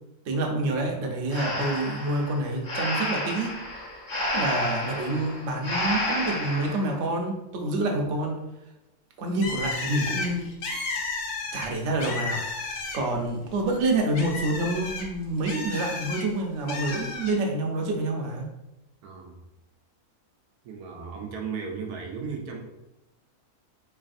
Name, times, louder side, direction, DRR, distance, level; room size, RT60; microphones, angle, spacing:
voice 1, 0.3-3.5 4.3-8.4 9.2-10.5 11.5-12.7 12.9-18.5, right 2 dB, 60° right, 1 dB, 0.9 m, -27 dB
Breathing, 1.3-6.8, left 1 dB, 40° left, 1.0 m, -30 dB
Bird, 9.4-13.3 13.6-16.2 16.7-17.3, left 3 dB, 90° left, 1.3 m, -33 dB
voice 2, 19.0-19.4 20.6-22.6, right 5 dB, 80° right, 2 dB, 1.1 m, -35 dB
4.0 x 3.2 x 2.5 m, 0.94 s
omnidirectional pair, 1.6 m